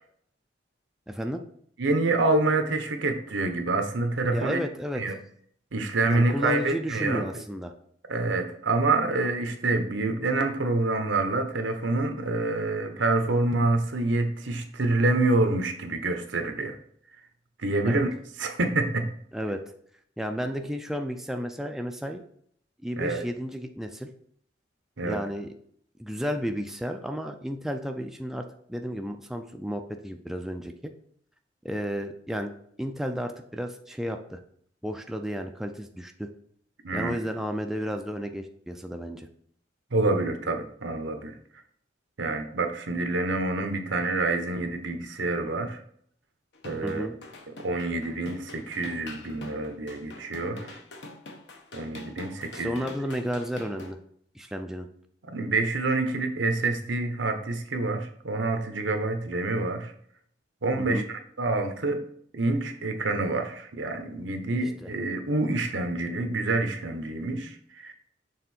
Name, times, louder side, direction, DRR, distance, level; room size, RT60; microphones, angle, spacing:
voice 1, 1.1-1.4 4.3-5.0 6.0-7.7 17.8-18.0 19.3-19.6 20.2-22.2 22.8-24.1 25.0-25.5 26.0-30.9 31.6-32.5 32.8-34.4 34.8-36.3 36.9-39.3 46.8-47.2 52.5-54.0 54.3-54.9 60.8-61.1 64.8-64.9, equal, ahead, 5 dB, 0.4 m, -32 dB
voice 2, 1.8-4.6 4.9-5.1 5.7-7.3 8.1-16.8 17.6-18.1 18.4-19.1 23.0-23.2 25.0-25.2 36.8-37.2 39.9-41.4 42.2-45.8 46.6-47.1 47.6-50.8 51.7-52.8 55.3-59.9 60.6-62.0 62.3-67.9, right 2 dB, 80° right, 6 dB, 0.9 m, -27 dB
sound 1, 46.5-53.9, left 2 dB, 65° left, 1.0 m, -44 dB
6.7 x 3.7 x 4.3 m, 0.63 s
head